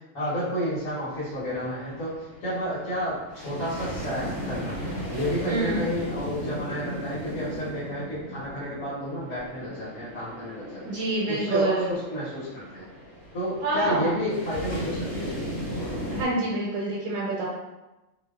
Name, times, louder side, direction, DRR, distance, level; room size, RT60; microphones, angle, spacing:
voice 1, 0.1-10.8 11.3-12.8 13.3-15.3 15.7-15.8, equal, 85° left, -12 dB, 1.3 m, -31 dB
sound 1, 0.8-16.3, equal, 60° left, 0.9 m, -36 dB
voice 2, 5.4-5.9 10.8-12.0 13.6-14.1 16.1-17.5, right 2 dB, 80° right, -4 dB, 0.9 m, -27 dB
2.7 x 2.1 x 2.2 m, 1.0 s
omnidirectional pair, 1.4 m